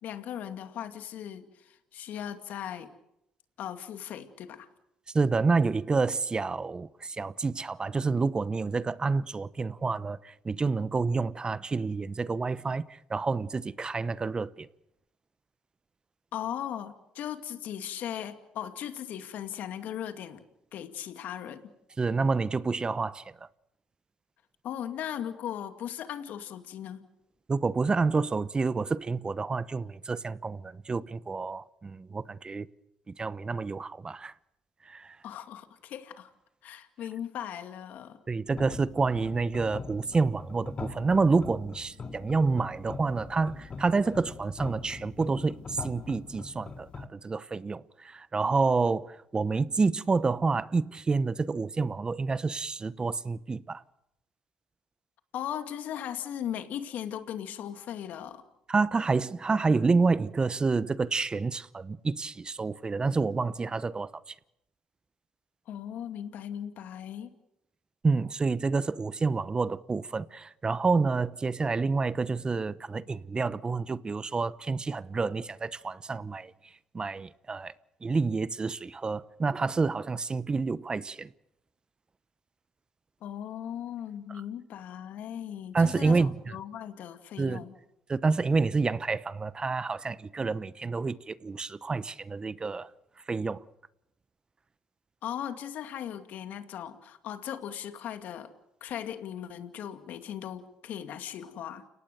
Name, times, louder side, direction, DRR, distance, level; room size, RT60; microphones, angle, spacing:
voice 1, 0.0-2.9 3.6-4.7 16.3-20.4 20.7-21.7 24.6-27.0 35.2-36.3 36.6-38.2 55.3-58.4 65.7-67.3 83.2-87.8 95.2-98.5 98.8-101.8, left 10 dB, 65° left, 2.4 m, -38 dB
voice 2, 5.1-14.7 22.0-23.3 27.5-32.7 33.2-34.3 34.9-35.2 38.3-53.8 58.7-64.3 68.0-76.5 76.9-77.7 78.0-81.3 85.7-86.4 87.4-87.6 88.1-92.9 93.3-93.6, right 4 dB, 30° right, 0.9 m, -28 dB
sound 1, 38.5-47.1, left 4 dB, 35° left, 2.4 m, -42 dB
29.5 x 18.0 x 6.9 m
supercardioid pair, 70°, 3 cm